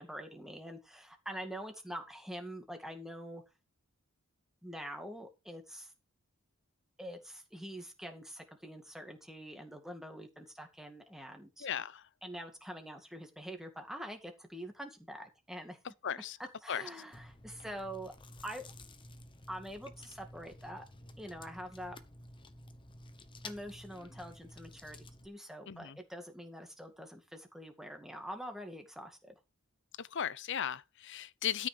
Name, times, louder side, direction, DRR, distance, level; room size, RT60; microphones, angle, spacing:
voice 1, 0.0-3.4 4.6-5.9 7.0-11.7 12.2-15.8 16.6-18.1 18.4-18.7 19.5-20.9 21.2-22.0 23.4-25.0 25.2-29.4, equal, ahead, 2.1 m, -45 dB
voice 2, 11.6-12.0 16.0-16.4 16.7-16.8 25.7-26.0 30.0-31.7, left 8 dB, 55° left, 0.6 m, -36 dB
Chewing mastication, 17.1-25.3, left 2 dB, 20° left, 1.0 m, -52 dB
13.0 x 6.0 x 5.1 m
head